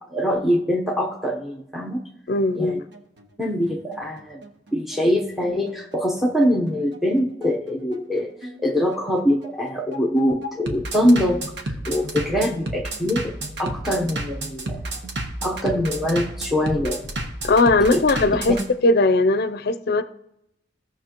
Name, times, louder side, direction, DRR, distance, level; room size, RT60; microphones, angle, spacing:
voice 1, 0.1-2.0 2.6-2.8 3.4-4.4 4.7-8.3 8.6-13.3 13.6-14.8 15.4-17.1 17.9-18.0, equal, ahead, -2 dB, 0.8 m, -23 dB
voice 2, 2.3-2.8 17.4-18.6 18.8-20.0, left 2 dB, 55° left, 12 dB, 0.5 m, -19 dB
Bass drum, 2.7-18.7, right 2 dB, 65° right, 1.1 m, -32 dB
16.5 x 5.8 x 2.9 m, 0.80 s
head